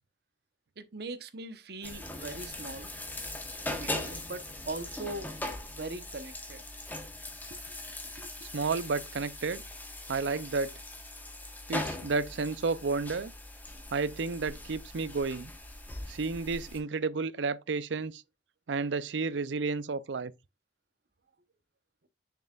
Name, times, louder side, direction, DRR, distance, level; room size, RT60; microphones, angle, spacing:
voice 1, 0.8-2.9 3.7-5.3 5.7-6.6 7.5-7.6 8.2-8.3 15.9-16.1, right 2 dB, 60° right, 1.0 m, -41 dB
sound 1, 1.8-16.8, left 1 dB, 10° left, 1.1 m, -40 dB
voice 2, 8.5-9.6 10.1-10.8 11.7-13.3 13.9-15.5 16.1-18.2 18.7-20.3, right 4 dB, 75° right, 0.5 m, -31 dB
6.6 x 6.6 x 2.4 m
head